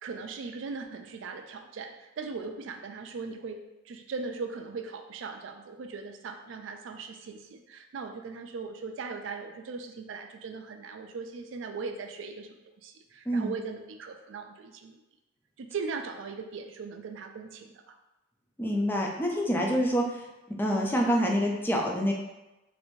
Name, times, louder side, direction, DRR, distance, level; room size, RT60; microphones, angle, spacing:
voice 1, 0.0-3.6 3.8-15.0 15.6-17.8, right 4 dB, 70° right, 5 dB, 0.4 m, -39 dB
voice 2, 18.6-20.2 20.5-22.1, equal, 10° left, -1 dB, 0.4 m, -26 dB
3.2 x 2.6 x 3.0 m, 0.99 s
head